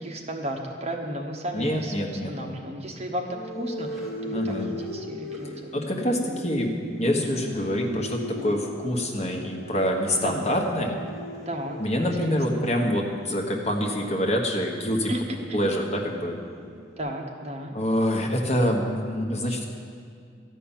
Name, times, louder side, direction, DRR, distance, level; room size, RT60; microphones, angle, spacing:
voice 1, 0.0-1.9 2.3-5.5 10.2-10.5 11.4-11.8 12.2-12.4 15.1-15.2 15.5-15.6 17.0-17.7 19.5-19.6, right 1 dB, 40° right, 1 dB, 1.2 m, -34 dB
voice 2, 1.5-2.5 4.3-4.7 5.7-11.0 11.8-15.1 15.5-16.3 17.7-19.7, equal, 40° left, 1 dB, 1.4 m, -26 dB
sound 1, 3.3-17.0, left 1 dB, ahead, 2.3 m, -38 dB
13.5 x 5.7 x 9.0 m, 2.3 s
head